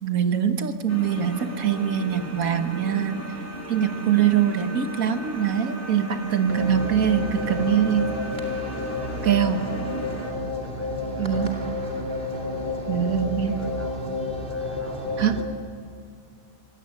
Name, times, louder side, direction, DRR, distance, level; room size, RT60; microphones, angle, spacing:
voice 1, 0.0-3.3 3.7-8.2 9.2-9.7 11.2-11.5 12.9-13.6 15.2-15.4, right 9 dB, 80° right, 8 dB, 1.8 m, -23 dB
sound 1, 0.9-10.3, equal, 10° left, 3.2 m, -37 dB
sound 2, 6.5-15.4, left 2 dB, 40° right, 2.6 m, -30 dB
voice 2, 10.2-11.5 12.3-13.0 13.4-13.9 14.2-15.4, equal, 10° right, 0 dB, 5.8 m, -44 dB
25.5 x 17.5 x 10.0 m, 2.3 s
omnidirectional pair, 1.5 m